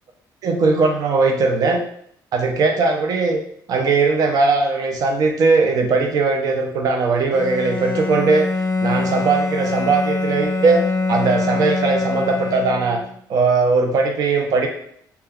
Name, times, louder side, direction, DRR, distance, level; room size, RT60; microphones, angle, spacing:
voice 1, 0.4-1.8 2.3-3.4 3.7-8.5 8.8-10.8 11.1-13.0 13.3-14.7, right 4 dB, 50° right, 3 dB, 0.4 m, -19 dB
Bowed string instrument, 7.3-13.1, left 3 dB, 45° left, 0.4 m, -24 dB
2.3 x 2.2 x 3.3 m, 0.66 s
cardioid pair, 155°, 8 cm